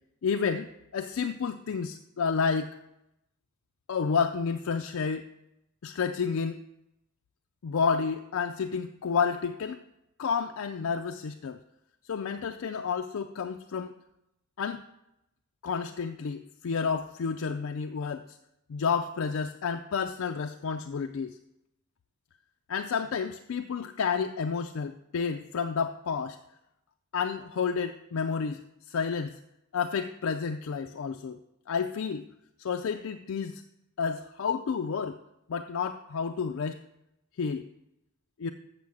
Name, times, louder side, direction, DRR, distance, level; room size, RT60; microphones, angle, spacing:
voice 1, 0.2-2.7 3.9-5.3 5.8-6.6 7.6-9.8 10.2-11.6 12.1-13.9 14.6-14.8 15.6-18.4 18.7-21.4 22.7-26.4 27.1-29.4 29.7-31.4 31.7-32.2 32.6-33.6 34.0-35.2 35.5-36.8 37.4-37.7 38.4-38.5, left 6 dB, 70° left, 7 dB, 0.4 m, -30 dB
7.6 x 5.5 x 7.2 m, 0.86 s
head